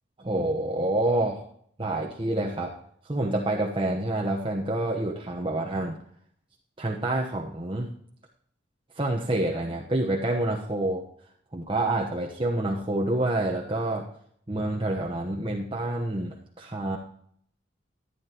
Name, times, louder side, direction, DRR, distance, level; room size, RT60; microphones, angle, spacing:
voice 1, 0.2-1.5 1.8-2.7 3.0-6.0 6.8-7.9 9.0-11.0 11.5-14.1 14.5-17.0, right 1 dB, 25° right, -1 dB, 1.1 m, -27 dB
14.5 x 9.8 x 3.0 m, 0.64 s
head